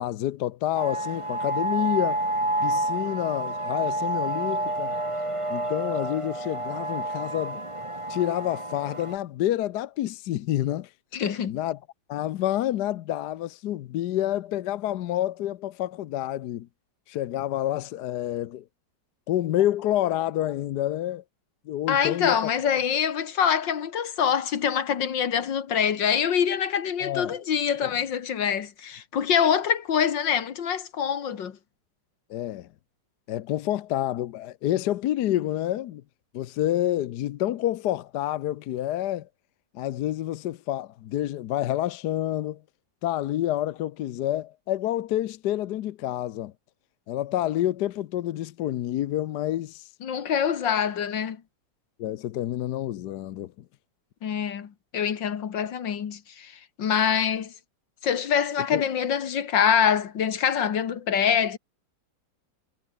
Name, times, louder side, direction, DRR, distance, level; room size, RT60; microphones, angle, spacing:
voice 1, 0.0-2.2 2.6-5.0 5.5-7.6 8.1-10.9 11.5-11.8 12.1-16.7 17.1-18.6 19.3-21.2 21.7-22.5 27.0-27.3 27.8-27.9 32.3-32.7 33.3-36.0 36.3-39.3 39.7-42.6 43.0-46.5 47.1-49.9 52.0-53.5 58.7-58.8, left 13 dB, 70° left, 1.2 m, -28 dB
sound 1, 0.7-9.2, right 1 dB, 15° right, 3.0 m, -29 dB
voice 2, 11.1-11.6 21.9-31.6 50.0-51.4 54.2-57.5 58.0-61.6, left 8 dB, 90° left, 2.3 m, -25 dB
omnidirectional pair, 1.9 m